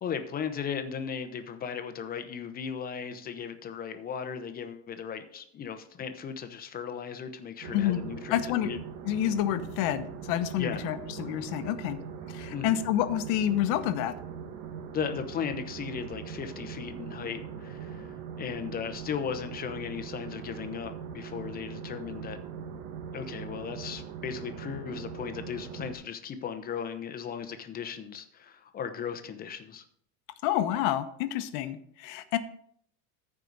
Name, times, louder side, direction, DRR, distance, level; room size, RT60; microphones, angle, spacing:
voice 1, 0.0-8.8 10.6-10.9 12.5-12.8 14.9-22.4 23.1-29.8, left 7 dB, 25° left, 8 dB, 0.8 m, -36 dB
sound 1, 7.6-25.9, right 7 dB, 60° right, 1.2 m, -41 dB
voice 2, 8.3-8.7 9.0-12.0 12.3-14.2 30.4-32.4, left 11 dB, 60° left, 10 dB, 1.0 m, -28 dB
14.0 x 4.9 x 4.0 m, 0.66 s
cardioid pair, 155°, 35 cm